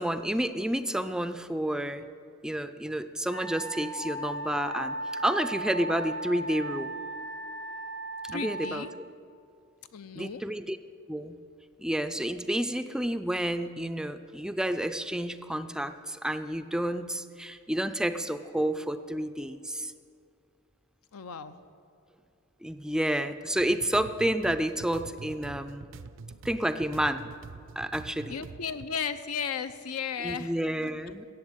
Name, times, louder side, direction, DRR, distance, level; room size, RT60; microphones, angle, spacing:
voice 1, 0.0-2.0 2.4-6.9 8.3-8.8 10.1-10.8 11.1-11.4 11.8-19.9 22.6-25.9 26.4-27.3 27.8-28.4 30.2-31.3, right 1 dB, 5° right, 11 dB, 0.4 m, -30 dB
Wind instrument woodwind instrument, 3.3-8.8, right 1 dB, 50° left, 1.2 m, -36 dB
voice 2, 8.3-8.9 9.9-10.4 21.1-21.6 28.3-30.9, left 6 dB, 85° left, 10 dB, 0.7 m, -35 dB
sound 1, 23.6-28.9, right 4 dB, 60° right, 0.5 m, -46 dB
14.5 x 8.3 x 8.1 m, 2.4 s
head